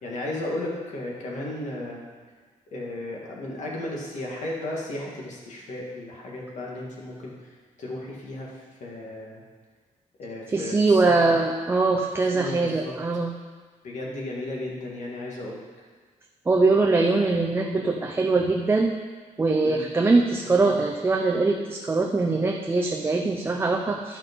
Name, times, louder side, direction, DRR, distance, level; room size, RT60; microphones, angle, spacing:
voice 1, 0.0-2.0 2.7-7.5 7.8-8.5 8.8-9.4 10.2-11.3 12.3-12.9 13.8-15.6 19.6-19.9 20.4-20.8, left 1 dB, 65° left, -3 dB, 2.2 m, -34 dB
voice 2, 10.5-13.3 16.5-19.0 19.4-24.2, right 3 dB, 15° right, 1 dB, 0.5 m, -22 dB
12.0 x 5.7 x 5.4 m, 1.5 s
wide cardioid pair, 175°, 13 cm